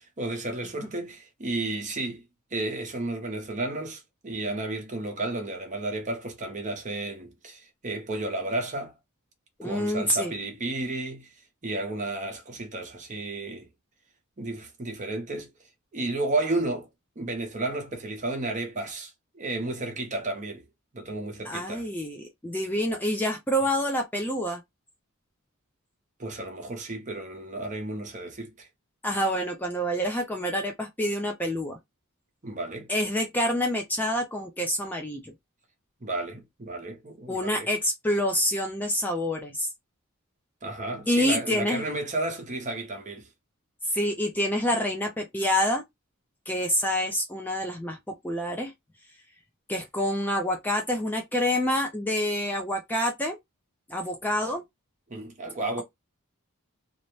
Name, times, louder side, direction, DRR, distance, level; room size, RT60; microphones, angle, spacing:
voice 1, 0.0-2.2 2.5-8.9 9.6-11.3 11.6-13.7 14.4-15.5 15.9-16.9 17.2-20.6 20.9-21.8 26.2-28.7 32.4-32.9 36.0-37.7 40.6-43.3 55.1-55.8, right 2 dB, 35° right, 0.8 m, -32 dB
voice 2, 9.6-10.3 21.4-24.6 29.0-31.8 32.9-35.3 37.3-39.7 41.1-41.8 43.8-45.8 46.5-48.7 49.7-53.4 53.9-54.6, equal, 10° left, 0.4 m, -27 dB
2.6 x 2.0 x 3.0 m
head